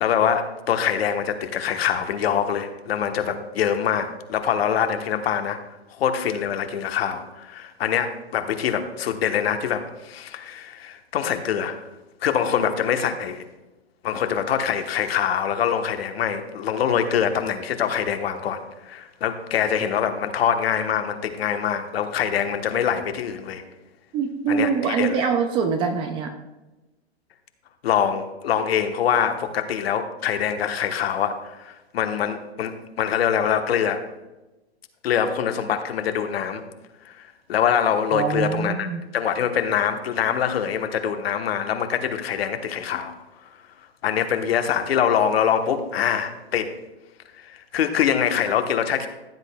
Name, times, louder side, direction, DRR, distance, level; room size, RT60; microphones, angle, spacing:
voice 1, 0.0-5.6 6.0-11.8 12.2-13.4 14.0-23.6 24.5-25.3 27.8-34.0 35.0-36.6 37.0-37.1 37.5-43.1 44.0-46.7 47.4-49.1, left 8 dB, 65° left, 8 dB, 1.1 m, -24 dB
voice 2, 24.1-26.3 38.1-39.0, right 6 dB, 15° right, 7 dB, 0.4 m, -24 dB
14.5 x 8.1 x 2.2 m, 1.1 s
hypercardioid pair, 130°, 33 cm